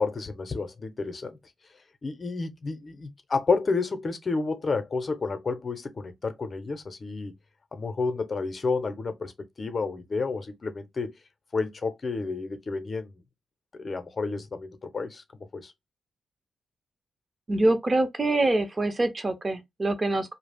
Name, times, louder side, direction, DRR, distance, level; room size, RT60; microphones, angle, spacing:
voice 1, 0.0-1.4 2.0-7.3 7.7-9.3 9.6-11.2 11.5-13.1 13.7-15.7, left 4 dB, 45° left, 0.6 m, -30 dB
voice 2, 17.5-20.3, right 2 dB, 35° right, 0.7 m, -25 dB
2.3 x 2.0 x 3.4 m
supercardioid pair, 45°, 0 cm